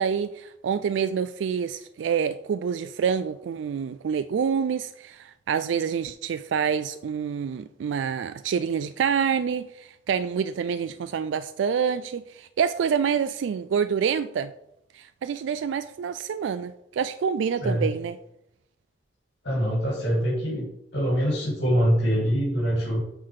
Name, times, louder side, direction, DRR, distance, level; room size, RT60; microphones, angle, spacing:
voice 1, 0.0-14.5 14.9-18.2, right 7 dB, 85° right, 0.3 m, -27 dB
voice 2, 19.4-20.7 20.9-23.0, equal, 90° left, 2.4 m, -24 dB
8.5 x 4.0 x 4.8 m
head